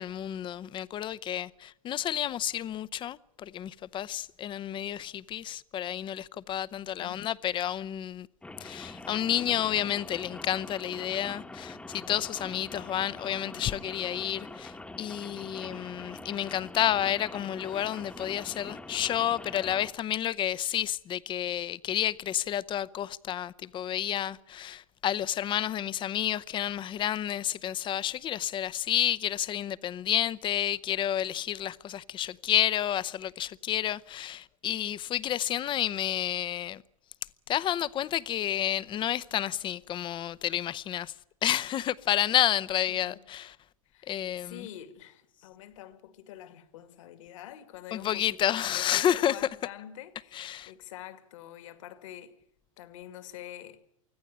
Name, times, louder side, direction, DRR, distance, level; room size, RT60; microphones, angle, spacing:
voice 1, 0.0-8.3 8.6-36.8 37.5-41.1 41.4-43.6 44.1-44.7 47.9-49.4 50.3-50.7, left 11 dB, 30° left, 0.8 m, -30 dB
Rain, 8.4-19.9, left 2 dB, 5° left, 1.2 m, -44 dB
voice 2, 42.9-43.3 43.9-52.4 52.8-53.8, left 11 dB, 65° left, 2.3 m, -46 dB
24.5 x 15.0 x 8.7 m
hypercardioid pair, 110°, 17 cm